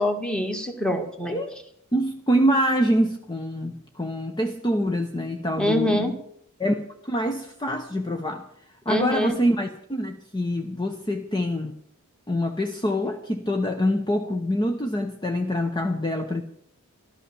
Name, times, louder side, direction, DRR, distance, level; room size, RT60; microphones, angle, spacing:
voice 1, 0.0-1.3 5.6-6.1 8.9-9.4, left 1 dB, 5° left, 5 dB, 1.8 m, -24 dB
voice 2, 1.9-6.1 6.6-8.5 8.9-11.7 12.3-16.4, equal, 20° left, 5 dB, 0.9 m, -25 dB
14.0 x 12.5 x 6.9 m, 0.71 s
head